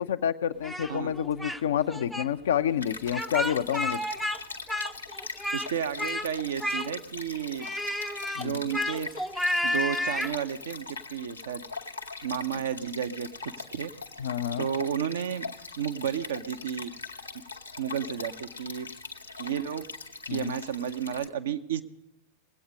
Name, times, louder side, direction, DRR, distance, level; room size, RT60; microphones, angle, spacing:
voice 1, 0.0-4.0 8.4-8.6 12.5-12.6 14.2-14.7 20.3-20.6, left 9 dB, 60° left, 11 dB, 0.5 m, -28 dB
Speech, 0.6-1.6 1.9-2.3 3.1-4.4 4.7-5.7 6.0-6.3 6.6-7.2 7.6-10.3, left 1 dB, ahead, 0.5 m, -31 dB
Stream, 2.8-21.3, left 4 dB, 80° left, 1.0 m, -42 dB
voice 2, 5.5-7.7 8.3-9.1 9.6-11.6 12.2-13.9 14.6-15.5 15.8-16.9 17.8-18.9 19.4-19.8 20.3-21.8, right 8 dB, 60° right, 9 dB, 0.7 m, -32 dB
20.0 x 8.5 x 5.2 m, 0.87 s
figure-of-eight pair, 90°, 0 cm